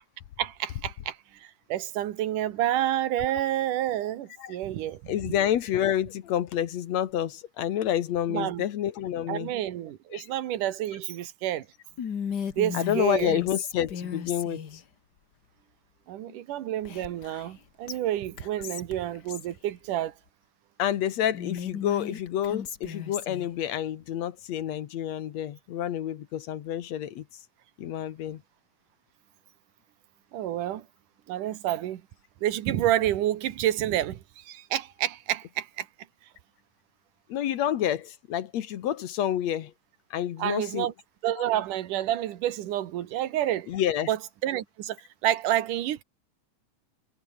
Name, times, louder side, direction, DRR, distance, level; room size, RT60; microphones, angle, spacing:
voice 1, 0.4-5.0 8.3-8.6 9.3-11.7 12.5-13.4 16.1-20.1 30.3-30.8 31.3-32.0 32.4-35.9 40.4-40.9 41.2-43.7 44.1-44.2 44.4-46.0, right 12 dB, 85° right, 3.0 m, -29 dB
voice 2, 5.1-9.5 10.1-10.3 12.7-14.8 16.3-16.4 20.8-27.4 27.8-28.4 37.3-39.7 40.1-40.9 41.4-41.5 43.7-44.1, left 11 dB, 65° left, 2.3 m, -29 dB
Whispering, 12.0-14.8 16.8-17.6 17.9-18.0 18.4-19.5 21.3-23.5, left 7 dB, 45° left, 1.5 m, -36 dB
omnidirectional pair, 3.6 m